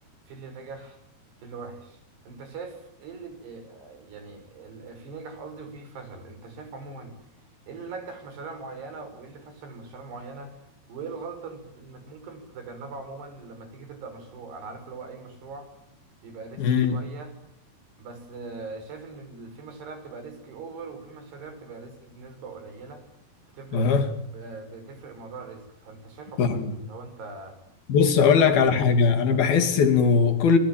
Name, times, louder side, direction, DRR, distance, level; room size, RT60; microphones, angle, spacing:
voice 1, 0.3-1.0 1.4-2.0 2.3-7.1 7.7-10.6 10.9-15.7 16.2-17.3 18.0-23.0 23.5-27.6 28.1-28.6, right 4 dB, 90° right, 7.7 m, -41 dB
voice 2, 16.6-17.0 23.7-24.0 26.4-26.7 27.9-30.6, left 6 dB, 65° left, 4.4 m, -20 dB
28.0 x 23.0 x 9.1 m
omnidirectional pair, 4.6 m